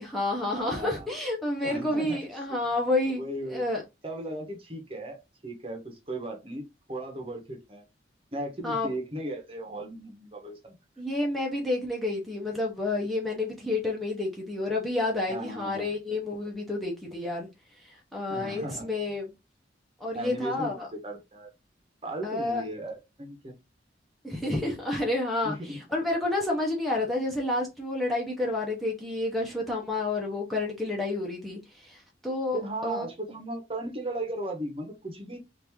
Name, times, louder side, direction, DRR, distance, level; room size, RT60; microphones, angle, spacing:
voice 1, 0.0-3.2 3.5-3.8 8.6-8.9 11.0-17.5 17.8-19.3 20.0-20.9 22.2-22.6 24.2-33.0, left 2 dB, ahead, 0.6 m, -30 dB
voice 2, 0.5-1.1 1.6-2.2 2.5-2.6 3.2-3.7 4.0-6.6 6.9-7.8 8.3-10.7 15.3-15.9 18.3-18.8 20.1-21.5 22.0-23.5 25.4-25.8 32.5-35.4, right 1 dB, 30° right, 0.8 m, -36 dB
3.0 x 2.5 x 3.4 m
head